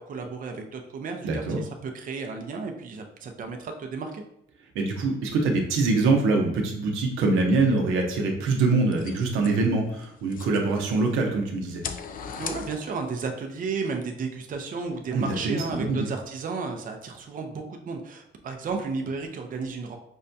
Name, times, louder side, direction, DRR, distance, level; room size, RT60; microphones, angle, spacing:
voice 1, 0.0-4.2 12.4-20.0, right 4 dB, 45° right, 4 dB, 0.5 m, -33 dB
voice 2, 1.2-1.6 4.7-11.8 15.1-16.1, right 3 dB, 90° right, 2 dB, 0.7 m, -24 dB
sound 1, 8.8-11.2 11.6-13.2, left 6 dB, 45° left, 0.4 m, -39 dB
5.3 x 2.2 x 2.6 m, 0.76 s
cardioid pair, 90°, 20 cm